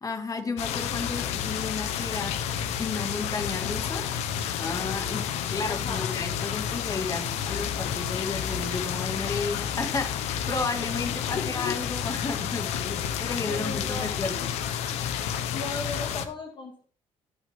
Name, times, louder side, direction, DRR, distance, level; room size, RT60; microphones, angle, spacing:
voice 1, 0.0-4.1 4.6-14.5, left 4 dB, 30° left, 2.2 m, -33 dB
sound 1, 0.6-16.3, left 9 dB, 85° left, 1.1 m, -30 dB
voice 2, 5.7-6.2 11.2-11.8 13.5-14.2 15.5-16.8, left 3 dB, 50° left, 2.0 m, -36 dB
17.5 x 6.0 x 3.7 m
cardioid pair, 90°, 11 cm